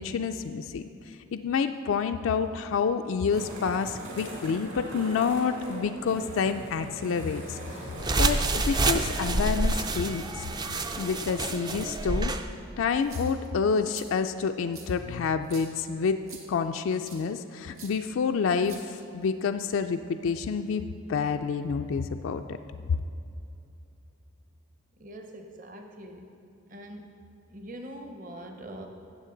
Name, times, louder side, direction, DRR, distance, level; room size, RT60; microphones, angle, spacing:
voice 1, 0.0-7.9 8.2-10.5 11.0-12.3 12.8-16.2 16.5-22.6, left 5 dB, 65° left, 7 dB, 0.3 m, -28 dB
sound 1, 3.3-11.3, right 1 dB, 55° right, 2.3 m, -42 dB
sound 2, 8.0-12.4, right 2 dB, 20° right, 0.3 m, -28 dB
sound 3, 12.9-13.5 13.9-14.1 14.7-14.9 15.4-15.7 16.3-16.4 17.0-17.2 17.8-17.9 18.6-19.2, right 6 dB, 80° right, 1.5 m, -46 dB
voice 2, 25.0-26.4 26.7-27.2 27.5-28.9, right 1 dB, 40° right, 4 dB, 0.8 m, -43 dB
15.5 x 7.2 x 3.9 m, 2.7 s
head